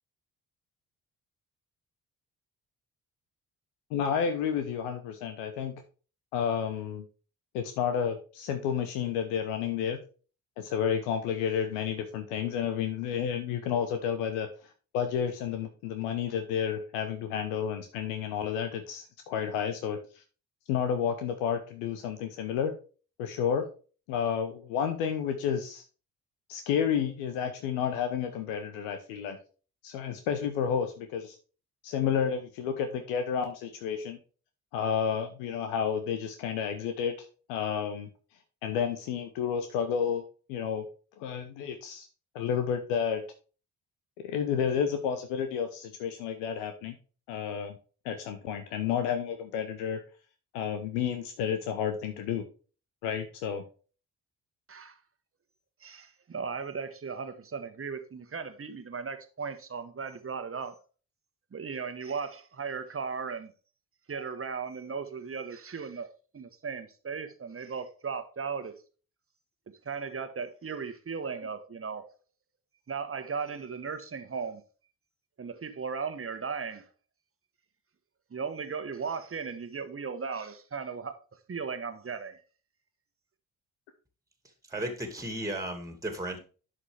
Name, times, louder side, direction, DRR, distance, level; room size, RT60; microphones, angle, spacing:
voice 1, 3.9-5.7 6.3-7.0 7.5-10.0 10.6-14.5 14.9-20.0 20.7-22.7 23.2-23.6 24.1-25.8 26.5-29.4 29.8-31.4 31.8-34.2 34.7-38.1 38.6-40.2 40.5-40.8 41.2-42.1 42.3-43.2 44.2-46.9 47.3-47.8 48.0-50.0 50.5-52.4 53.0-53.6, left 8 dB, 70° left, 1.0 m, -31 dB
voice 2, 55.8-60.7 61.5-63.5 64.1-66.1 66.3-68.7 69.8-72.1 72.9-74.6 75.4-76.9 78.3-81.2 81.5-82.4, right 5 dB, 30° right, 1.5 m, -36 dB
voice 3, 84.7-86.4, right 1 dB, 5° right, 2.5 m, -34 dB
11.0 x 5.0 x 3.4 m
figure-of-eight pair, 40°, 44 cm